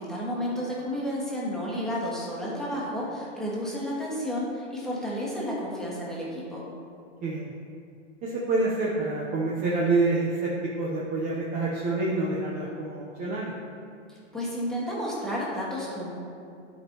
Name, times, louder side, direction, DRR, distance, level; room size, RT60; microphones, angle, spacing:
voice 1, 0.0-6.6 14.1-16.1, equal, ahead, -6 dB, 1.5 m, -31 dB
voice 2, 7.2-7.5 8.2-13.5, right 3 dB, 25° right, -4 dB, 0.7 m, -27 dB
12.5 x 5.4 x 2.9 m, 2.5 s
hypercardioid pair, 135°, 36 cm